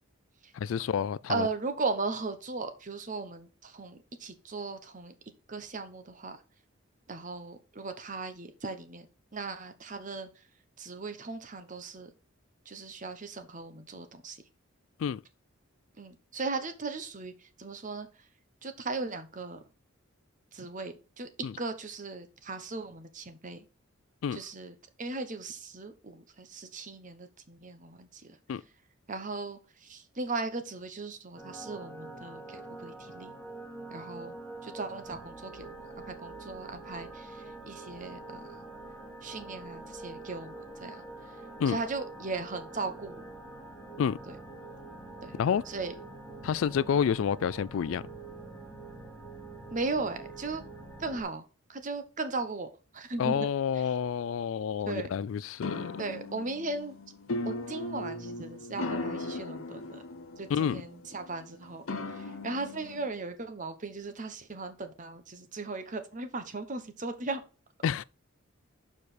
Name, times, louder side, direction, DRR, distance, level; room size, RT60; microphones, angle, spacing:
voice 1, 0.5-1.5 15.0-15.2 21.4-21.5 24.2-24.4 28.5-28.6 41.6-41.8 44.0-44.2 45.4-45.6 46.4-48.1 53.2-56.0 60.5-60.8 67.8-68.0, left 7 dB, 70° left, 0.3 m, -29 dB
voice 2, 1.3-5.1 5.5-6.4 7.1-9.1 9.3-10.3 10.8-12.1 12.7-14.4 16.0-17.3 17.6-18.1 18.6-19.6 20.5-21.3 21.6-23.6 24.3-28.2 29.1-33.3 33.9-34.4 34.6-35.7 36.1-38.7 39.2-40.5 40.8-41.0 41.7-43.2 44.3-44.4 45.2-45.3 45.7-45.9 46.4-46.6 49.7-50.6 51.0-53.4 54.9-55.1 56.0-57.0 57.4-60.0 60.4-61.8 62.1-67.4, right 3 dB, 40° right, 0.9 m, -37 dB
sound 1, 31.4-51.2, right 2 dB, 5° left, 1.6 m, -45 dB
sound 2, 55.6-63.1, left 2 dB, 85° left, 1.1 m, -38 dB
6.9 x 4.9 x 4.2 m
head